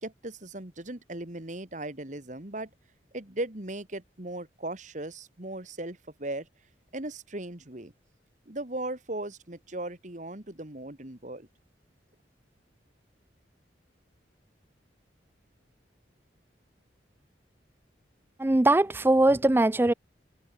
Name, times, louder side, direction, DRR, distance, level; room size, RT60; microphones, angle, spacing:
voice 1, 0.0-2.7 3.1-6.5 6.9-7.9 8.5-11.5, right 2 dB, 45° right, 2.3 m, -37 dB
voice 2, 18.4-19.9, right 2 dB, 10° right, 0.4 m, -21 dB
open air
head